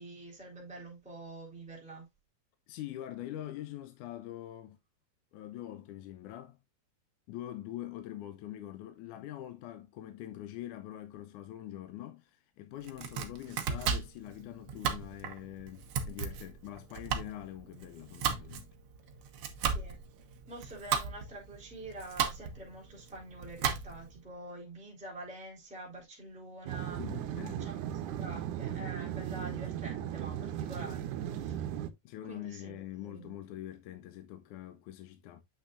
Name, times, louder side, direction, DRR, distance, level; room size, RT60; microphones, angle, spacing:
voice 1, 0.0-2.1 19.7-20.0 20.5-27.0 27.6-31.7 32.2-33.4, right 2 dB, ahead, 2.9 m, -46 dB
voice 2, 2.7-4.8 5.3-6.6 7.3-18.7 19.4-19.7 27.0-27.7 32.0-35.4, left 13 dB, 80° left, 2.2 m, -44 dB
Domestic sounds home sounds, 12.8-24.2, right 7 dB, 65° right, 1.4 m, -36 dB
sound 1, 26.7-31.9, right 10 dB, 85° right, 2.1 m, -37 dB
8.3 x 6.3 x 2.5 m
omnidirectional pair, 3.6 m